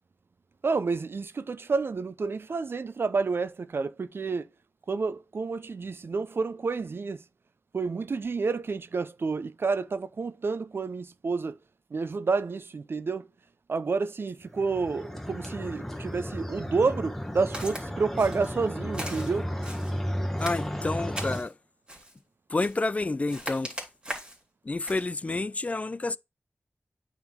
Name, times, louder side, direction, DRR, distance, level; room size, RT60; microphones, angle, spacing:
voice 1, 0.6-4.5 4.9-7.2 7.7-11.6 11.9-13.3 13.7-19.5, right 4 dB, 65° right, 0.4 m, -29 dB
sound 1, 14.5-21.4, equal, 5° left, 1.1 m, -34 dB
Walk footsteps, 17.5-17.8 18.2-18.6 18.9-19.9 20.4-21.5 21.9-22.2 22.6-22.9 23.3-24.4 24.8-25.1, equal, 25° right, 2.7 m, -39 dB
voice 2, 20.4-21.5 22.5-23.7 24.7-26.2, left 2 dB, 35° left, 0.3 m, -29 dB
8.9 x 3.6 x 3.6 m
wide cardioid pair, 80°, 4 cm